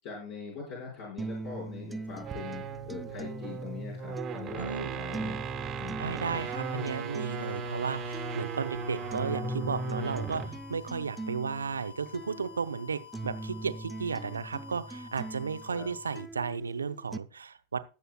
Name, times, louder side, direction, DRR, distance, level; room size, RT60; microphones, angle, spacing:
voice 1, 0.0-5.4 5.8-6.4 15.7-15.9, left 5 dB, 45° left, -4 dB, 5.4 m, -42 dB
sound 1, 1.2-17.2, right 3 dB, 5° right, 0.5 m, -42 dB
sound 2, 2.1-10.6, right 4 dB, 30° right, 1.3 m, -37 dB
voice 2, 4.6-5.0 6.0-17.8, right 5 dB, 75° right, 13 dB, 0.7 m, -34 dB
sound 3, 6.2-16.2, left 10 dB, 70° left, 2.3 m, -50 dB
20.5 x 8.0 x 2.3 m, 0.33 s
figure-of-eight pair, 90°, 0 cm